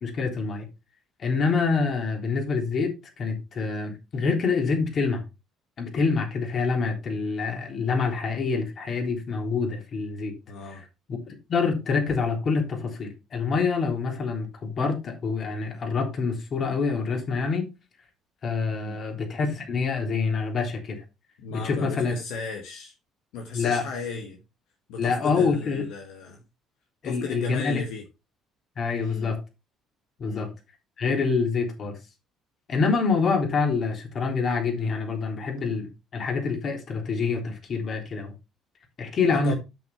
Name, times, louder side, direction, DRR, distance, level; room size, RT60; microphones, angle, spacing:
voice 1, 0.0-0.7 1.2-5.2 5.8-10.3 10.7-10.8 11.3-17.7 18.4-21.0 21.5-22.1 23.5-23.9 25.0-25.8 27.0-27.8 28.8-29.4 30.2-30.5 31.0-32.0 32.7-38.3 39.0-39.5, left 4 dB, 50° left, 3.6 m, -26 dB
voice 2, 10.5-10.8 18.7-19.0 21.4-22.9 23.3-24.4 24.9-26.4 27.0-28.0 29.0-29.3 30.2-30.5 39.3-39.5, left 4 dB, 80° left, 1.6 m, -35 dB
8.3 x 6.7 x 4.4 m
supercardioid pair, 80°, 0 cm